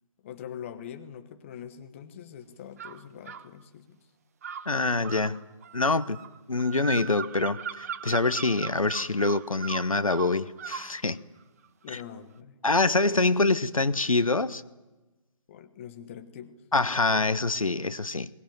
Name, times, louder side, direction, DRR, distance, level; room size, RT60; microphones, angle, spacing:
voice 1, 0.2-4.1 11.8-12.6 15.5-16.6, left 9 dB, 25° left, 8 dB, 1.2 m, -43 dB
sound 1, 2.8-3.5 4.4-10.9, right 8 dB, 25° right, 0.8 m, -38 dB
voice 2, 4.7-5.4 5.7-6.2 6.5-11.2 11.9-12.0 12.6-14.6 16.7-18.3, left 3 dB, 75° left, 14 dB, 1.1 m, -25 dB
22.0 x 20.5 x 9.3 m, 1.1 s
figure-of-eight pair, 145°, 18 cm